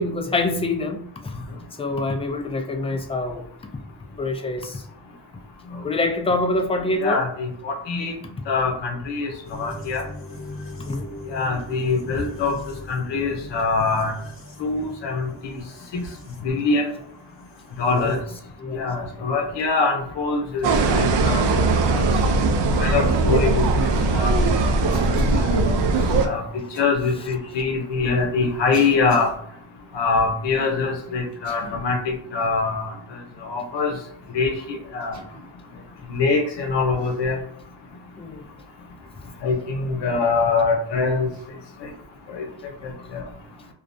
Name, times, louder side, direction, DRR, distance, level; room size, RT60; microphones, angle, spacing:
voice 1, 0.0-1.3 1.8-3.4 4.2-4.8 5.8-7.2 10.8-11.1 18.0-18.2 18.6-18.9 38.2-38.4, left 2 dB, 15° left, 4 dB, 0.3 m, -25 dB
voice 2, 7.0-8.1 8.5-10.1 11.3-12.6 12.9-14.1 14.6-15.6 16.4-16.9 17.8-18.2 18.7-20.7 20.9-21.4 22.8-23.6 24.1-24.3 25.3-25.6 26.2-29.3 29.9-32.9 33.4-33.9 34.3-35.2 36.1-37.4 39.4-41.3 42.3-42.5 42.8-42.9, left 4 dB, 80° left, 3 dB, 0.7 m, -23 dB
sound 1, 9.4-18.2, left 1 dB, 30° left, 0.8 m, -40 dB
sound 2, 20.6-26.3, right 3 dB, 80° right, 0.5 m, -20 dB
Cough, 24.9-25.5 26.7-26.9 27.8-27.9 28.7-29.4 31.3-31.9 32.4-32.6 33.7-34.1 35.1-35.5 36.9-37.2 39.4-39.6 41.3-41.5, right 1 dB, 45° right, 0.9 m, -42 dB
2.3 x 2.0 x 2.5 m, 0.68 s
cardioid pair, 85°, 42 cm